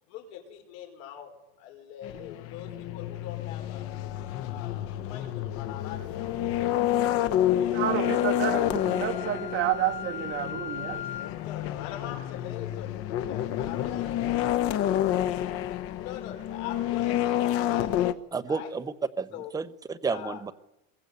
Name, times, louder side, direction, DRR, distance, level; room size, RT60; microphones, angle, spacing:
voice 1, 0.1-3.9 4.5-8.3 11.3-12.9 13.2-14.6 15.9-18.1 18.5-18.7 19.3-19.5 20.1-20.5, left 10 dB, 65° left, 4 dB, 5.5 m, -43 dB
sound 1, 2.0-18.1, left 12 dB, 45° left, 1.0 m, -29 dB
voice 2, 7.7-11.0, right 11 dB, 40° right, 5 dB, 2.1 m, -30 dB
Wind instrument woodwind instrument, 8.0-11.4, left 9 dB, 20° left, 2.1 m, -39 dB
voice 3, 18.3-20.5, right 4 dB, 10° right, 10 dB, 0.8 m, -31 dB
22.5 x 22.0 x 8.3 m, 0.91 s
cardioid pair, 155°, 31 cm